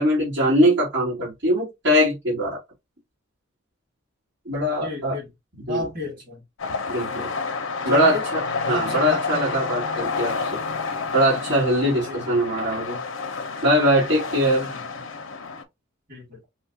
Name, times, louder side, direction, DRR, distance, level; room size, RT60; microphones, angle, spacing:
voice 1, 0.0-2.6 4.5-5.2 5.7-5.9 6.9-7.3 7.8-8.4 8.7-10.5 11.1-13.0 13.6-14.7, equal, 60° right, 2.3 m, -21 dB
voice 2, 4.8-5.3 5.7-6.4 7.0-7.2 7.9-8.2 8.7-9.6 11.9-12.7 14.5-14.9 16.1-16.5, left 2 dB, 45° right, 2.6 m, -33 dB
sound 1, 6.6-15.6, left 4 dB, 75° left, 0.7 m, -29 dB
5.4 x 2.4 x 2.7 m
head